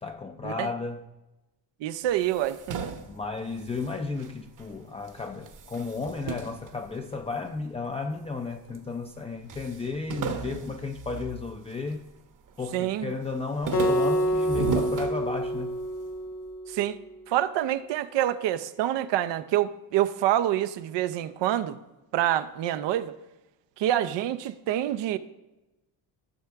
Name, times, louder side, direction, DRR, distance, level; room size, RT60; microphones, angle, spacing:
voice 1, 0.0-1.1 3.1-12.0 12.6-15.8 18.2-18.3, left 4 dB, 15° left, 0.5 m, -33 dB
voice 2, 1.8-3.0 12.7-13.1 16.7-17.0 17.3-21.8 22.1-23.1 23.8-25.2, right 12 dB, 80° right, 0.7 m, -27 dB
sound 1, 2.1-4.7 5.1-7.6 8.2-8.9 9.1-9.2 9.5-12.1 12.5-12.9 13.3-15.8, right 6 dB, 45° right, 1.0 m, -36 dB
Acoustic guitar, 13.7-17.0, equal, 40° left, 1.0 m, -27 dB
15.0 x 5.7 x 3.5 m
cardioid pair, 105°, 42 cm